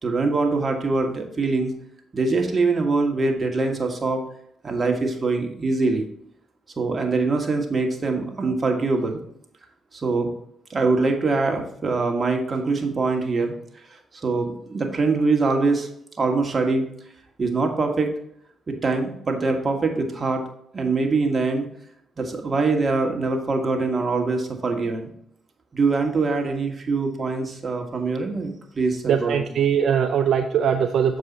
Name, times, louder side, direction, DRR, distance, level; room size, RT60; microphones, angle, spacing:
voice 1, 0.0-1.7 2.1-4.2 4.6-6.1 6.8-9.2 9.9-10.3 10.7-13.5 13.9-15.9 16.2-16.8 17.4-18.1 18.7-20.4 20.7-21.7 22.2-25.1 25.7-29.5, right 3 dB, 45° right, 4 dB, 1.5 m, -23 dB
voice 2, 29.1-31.2, right 8 dB, 70° right, 6 dB, 0.4 m, -21 dB
7.2 x 4.8 x 4.0 m, 0.71 s
supercardioid pair, 50°, 0 cm